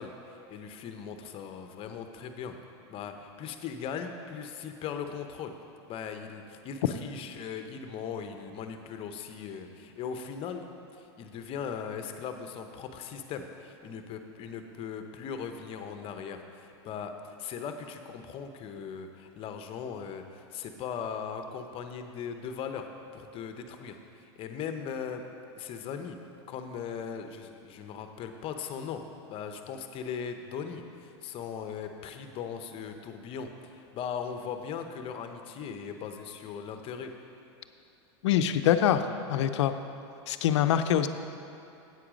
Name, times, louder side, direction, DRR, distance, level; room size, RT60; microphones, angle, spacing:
voice 1, 0.0-2.5 2.9-5.5 5.9-10.7 10.9-22.9 23.1-25.2 25.6-26.2 26.5-29.0 29.3-37.1, left 7 dB, 40° left, 7 dB, 0.8 m, -39 dB
voice 2, 38.2-39.0 39.3-39.7 40.3-41.1, left 10 dB, 75° left, 9 dB, 0.6 m, -24 dB
8.5 x 8.3 x 5.1 m, 2.8 s
hypercardioid pair, 120°, 15 cm